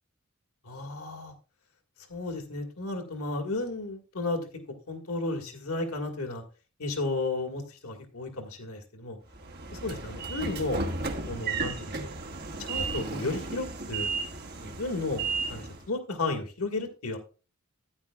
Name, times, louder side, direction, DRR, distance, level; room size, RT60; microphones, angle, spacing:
voice 1, 0.6-1.3 2.1-4.5 4.9-6.4 6.8-9.2 9.7-10.8 11.3-12.1 12.6-14.1 14.6-17.2, left 2 dB, 80° left, 4 dB, 1.7 m, -33 dB
Train / Sliding door, 9.3-15.8, right 4 dB, 50° right, 1.4 m, -34 dB
14.0 x 9.8 x 2.3 m, 0.34 s
head